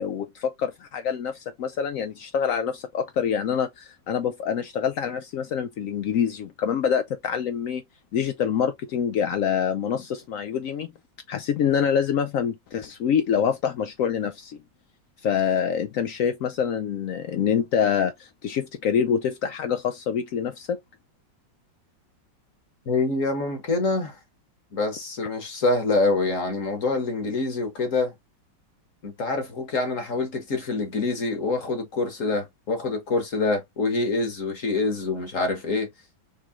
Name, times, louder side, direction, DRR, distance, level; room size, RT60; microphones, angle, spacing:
voice 1, 0.0-7.8 8.1-10.9 11.3-14.6 15.2-20.8, left 7 dB, 90° left, 0.7 m, -26 dB
voice 2, 22.9-24.2 24.7-28.1 29.0-35.9, left 3 dB, 50° left, 1.3 m, -26 dB
4.5 x 3.0 x 3.5 m
omnidirectional pair, 2.0 m